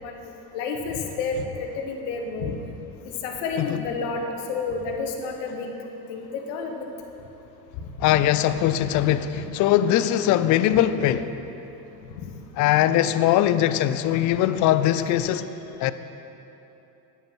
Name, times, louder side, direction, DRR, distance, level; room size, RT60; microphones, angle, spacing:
voice 1, 0.0-2.5 3.0-5.7 6.1-6.9 8.7-8.8 9.3-9.4 12.2-12.3, left 4 dB, 75° left, 3 dB, 1.1 m, -30 dB
voice 2, 8.0-11.3 12.6-15.5 15.8-15.9, left 12 dB, 40° left, 13 dB, 0.5 m, -21 dB
9.9 x 7.7 x 6.0 m, 2.9 s
hypercardioid pair, 80°, 49 cm